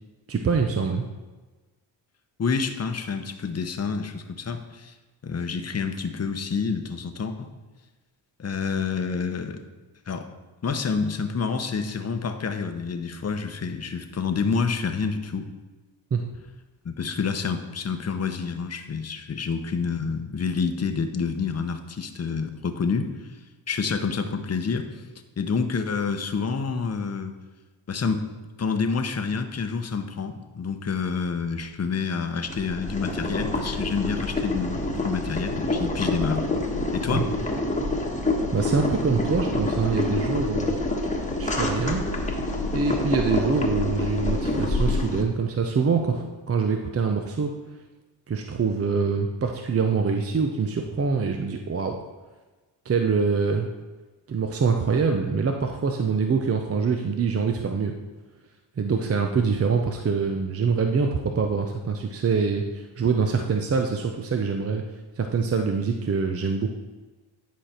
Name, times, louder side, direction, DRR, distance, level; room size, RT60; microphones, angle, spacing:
voice 1, 0.3-1.0 16.1-16.2 37.1-37.2 38.5-40.8 41.4-42.1 42.7-47.5 48.3-52.0 52.8-53.7 54.3-57.9 58.8-64.8 65.2-66.7, right 5 dB, 30° right, 4 dB, 0.7 m, -24 dB
voice 2, 2.4-4.9 5.2-7.5 8.4-9.6 10.1-10.3 10.6-15.5 16.8-23.4 23.7-25.0 25.4-27.3 27.9-28.2 28.6-36.5 36.9-37.3, left 5 dB, 30° left, 7 dB, 0.9 m, -28 dB
Boiling, 32.5-45.2, left 2 dB, 15° left, 1.3 m, -27 dB
10.5 x 5.0 x 4.4 m, 1.2 s
cardioid pair, 85°, 47 cm